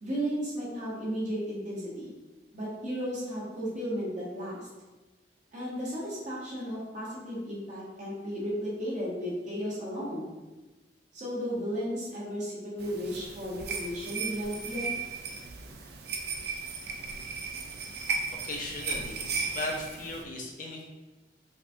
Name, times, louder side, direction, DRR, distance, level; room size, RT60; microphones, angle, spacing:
voice 1, 0.0-2.1 2.5-4.7 5.5-10.3 11.1-14.9, equal, 45° right, -7 dB, 1.1 m, -34 dB
sound 1, 12.8-20.2, right 4 dB, 60° right, 0.4 m, -36 dB
voice 2, 17.7-20.8, left 2 dB, 50° left, 0 dB, 0.6 m, -38 dB
4.7 x 2.3 x 2.7 m, 1.2 s
head